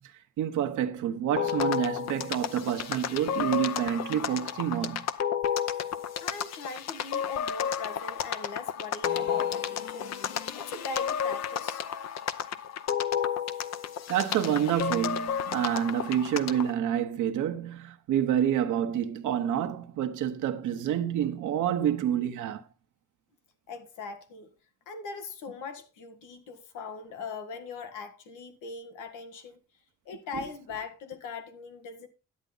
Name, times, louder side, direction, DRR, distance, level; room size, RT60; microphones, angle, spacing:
voice 1, 0.4-5.1 14.1-22.6, right 10 dB, 80° right, 1.0 m, -28 dB
sound 1, 1.4-16.7, left 8 dB, 60° left, 0.8 m, -32 dB
voice 2, 6.2-11.8 23.7-24.5 24.9-29.6 30.0-32.1, left 4 dB, 90° left, 1.6 m, -40 dB
10.5 x 8.2 x 3.9 m
cardioid pair, 90°, 30 cm